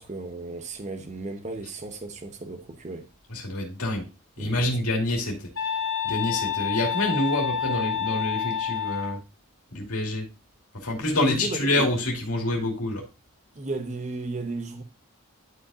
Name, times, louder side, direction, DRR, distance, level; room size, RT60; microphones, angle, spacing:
voice 1, 0.0-3.1 4.4-4.6 11.0-11.9 13.5-14.8, right 2 dB, 30° right, 0.7 m, -34 dB
voice 2, 3.3-4.1 4.4-5.5 6.0-9.2 9.7-10.3 10.7-13.0, left 1 dB, 90° left, 2.4 m, -27 dB
sound 1, 5.6-9.2, left 8 dB, 50° left, 0.9 m, -28 dB
11.5 x 5.1 x 2.4 m
head